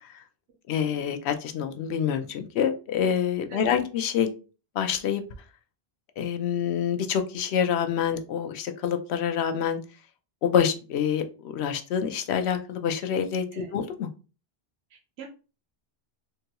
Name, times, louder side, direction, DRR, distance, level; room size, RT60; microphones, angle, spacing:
voice 1, 0.7-4.3 4.8-5.2 6.2-9.8 10.4-14.1, left 8 dB, 90° left, 7 dB, 0.8 m, -27 dB
voice 2, 3.5-3.8 13.5-13.7 14.9-15.3, right 6 dB, 80° right, 0 dB, 0.9 m, -43 dB
3.8 x 2.2 x 2.8 m, 0.33 s
omnidirectional pair, 1.1 m